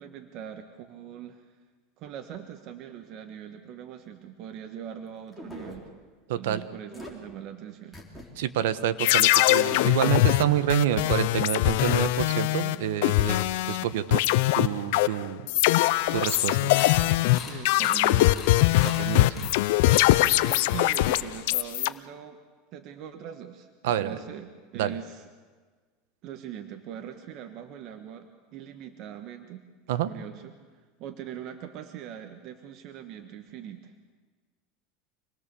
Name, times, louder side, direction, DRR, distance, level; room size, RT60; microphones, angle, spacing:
voice 1, 0.0-1.4 2.0-5.9 6.3-8.0 17.3-18.4 19.4-19.6 20.4-22.4 22.7-25.3 26.2-29.6 30.0-30.6 31.0-33.9, right 9 dB, 45° right, 6 dB, 1.4 m, -41 dB
sound 1, 5.3-5.8 6.9-7.1 7.9-8.3 8.7-8.8 9.5-10.1, equal, 5° right, 3.8 m, -42 dB
voice 2, 6.3-6.6 8.4-14.2 14.6-15.4 16.1-16.7 18.9-19.5 23.8-24.2 24.7-24.9 29.9-30.1, right 11 dB, 80° right, 12 dB, 1.2 m, -28 dB
sound 2, 9.0-13.8 14.1-21.9, left 17 dB, 70° left, 0.6 m, -22 dB
sound 3, 15.9-21.7, left 5 dB, 25° left, 5.7 m, -42 dB
26.5 x 20.0 x 7.0 m, 1.4 s
supercardioid pair, 145°, 0 cm